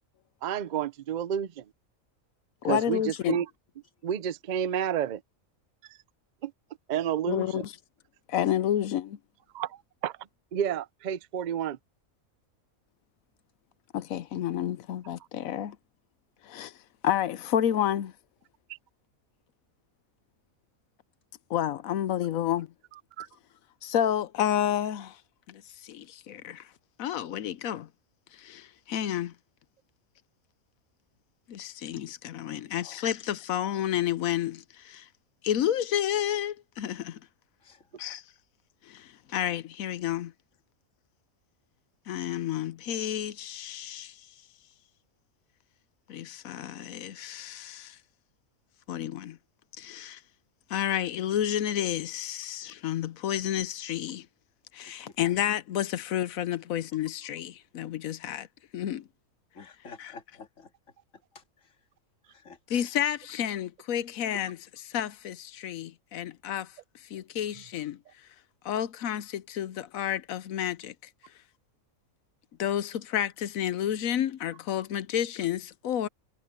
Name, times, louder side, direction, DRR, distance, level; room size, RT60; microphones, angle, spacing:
voice 1, 0.4-1.6 2.6-3.5 4.0-5.2 6.4-6.5 6.9-7.6 9.5-10.1 10.5-11.8 23.2-23.3, right 9 dB, 55° right, 0.5 m, -30 dB
voice 2, 2.6-3.4 7.3-7.7 8.3-9.2 13.9-15.8 16.4-16.7 17.0-18.1 21.5-22.7 23.8-25.2 25.5-26.7 27.0-27.9 28.3-29.3 31.5-35.1 35.4-37.2 38.0-38.2 38.9-40.3 42.1-44.1 46.1-48.0 48.9-49.4 49.8-50.2 50.7-54.3 54.7-58.5 58.7-59.0 60.0-60.1 62.7-66.7 67.1-68.0 68.6-70.9 72.6-76.1, left 10 dB, 80° left, 1.1 m, -30 dB
voice 3, 59.5-60.7 61.3-61.8 62.3-62.6, left 5 dB, 65° left, 2.4 m, -50 dB
omnidirectional pair, 1.4 m